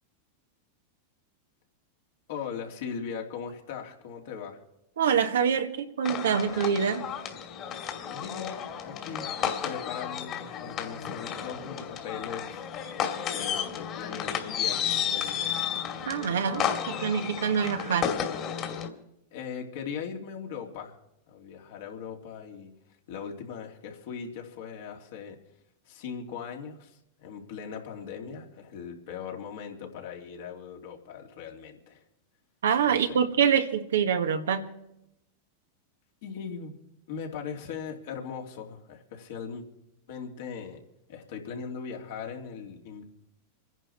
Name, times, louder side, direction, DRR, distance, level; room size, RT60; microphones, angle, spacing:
voice 1, 2.3-4.6 8.1-9.3 9.6-12.6 13.3-15.4 19.3-21.0 21.3-22.7 23.1-25.4 25.8-32.0 32.9-33.2 36.2-36.8 37.1-39.6 40.1-40.8 41.1-43.0, left 6 dB, 65° left, 1 dB, 3.0 m, -39 dB
voice 2, 5.0-7.1 16.1-18.1 32.6-34.7, right 7 dB, 80° right, 6 dB, 1.6 m, -25 dB
sound 1, 6.0-18.9, left 8 dB, 40° left, 2.6 m, -32 dB
27.0 x 10.5 x 4.4 m, 0.84 s
hypercardioid pair, 100°, 0 cm